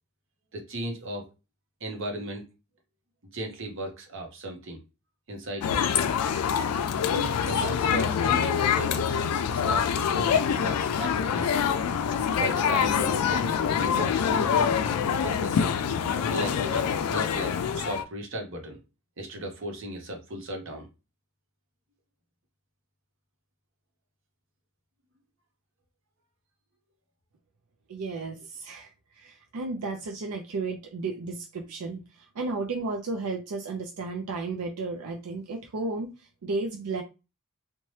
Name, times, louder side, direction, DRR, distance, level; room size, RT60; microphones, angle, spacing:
voice 1, 0.5-1.3 1.8-2.4 3.3-4.8 5.3-5.8 7.1-11.8 12.3-13.5 13.8-14.7 15.0-15.8 16.3-18.8 19.2-20.9, right 1 dB, 60° right, 3 dB, 0.8 m, -36 dB
sound 1, 5.6-18.0, left 7 dB, 85° left, 0.3 m, -25 dB
voice 2, 27.9-28.9 29.2-32.0 32.4-36.1 36.4-37.0, right 3 dB, 85° right, 3 dB, 0.5 m, -33 dB
2.8 x 2.1 x 3.1 m, 0.28 s
head